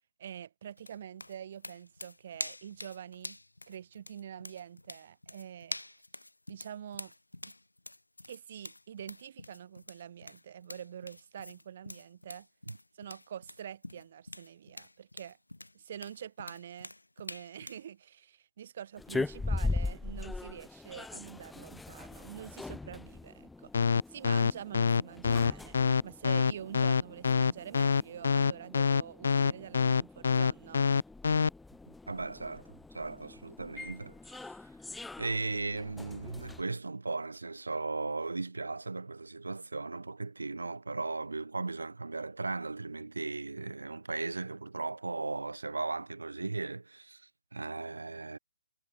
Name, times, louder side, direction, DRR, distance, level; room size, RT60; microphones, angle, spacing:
voice 1, 0.2-3.4 3.7-5.8 6.5-7.1 8.3-12.5 13.0-15.4 15.7-25.8 26.0-30.9, right 9 dB, 45° right, 4.2 m, -46 dB
sound 1, 0.8-17.9, left 2 dB, 90° left, 3.1 m, -46 dB
sound 2, 19.0-36.6, left 3 dB, 5° left, 1.0 m, -41 dB
sound 3, 23.7-31.5, left 5 dB, 60° left, 0.6 m, -25 dB
voice 2, 31.9-34.4 35.2-48.4, right 3 dB, 75° right, 1.4 m, -37 dB
figure-of-eight pair, 140°, 0 cm